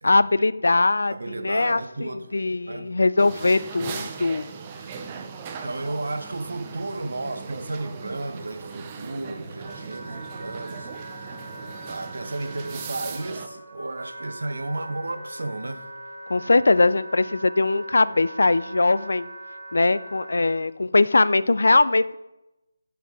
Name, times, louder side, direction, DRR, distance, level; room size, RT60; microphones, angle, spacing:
voice 1, 0.0-4.5 16.3-19.3 19.7-22.2, left 3 dB, 70° left, 0.3 m, -21 dB
voice 2, 1.1-2.3 2.6-2.9 5.6-10.9 11.2-11.4 11.6-15.9, right 2 dB, 75° right, 0.8 m, -33 dB
sound 1, 3.2-13.5, right 6 dB, 20° right, 0.5 m, -39 dB
Wind instrument woodwind instrument, 9.2-20.6, right 1 dB, 55° right, 2.0 m, -41 dB
11.0 x 4.6 x 3.5 m
figure-of-eight pair, 170°, 0 cm